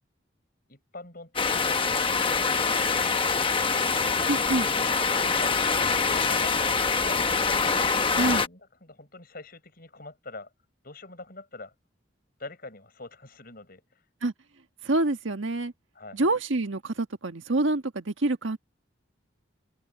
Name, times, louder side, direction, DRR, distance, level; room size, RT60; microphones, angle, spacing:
voice 1, 0.7-2.9 3.6-5.6 6.1-6.8 7.0-7.6 8.4-10.5 10.8-11.7 12.4-14.0 15.9-16.2, left 2 dB, 50° left, 6.4 m, -45 dB
sound 1, 1.4-8.5, left 5 dB, 25° left, 1.0 m, -25 dB
voice 2, 4.3-4.7 8.2-8.4 14.2-14.3 14.8-15.7 16.1-18.6, right 2 dB, 90° right, 1.6 m, -26 dB
open air
head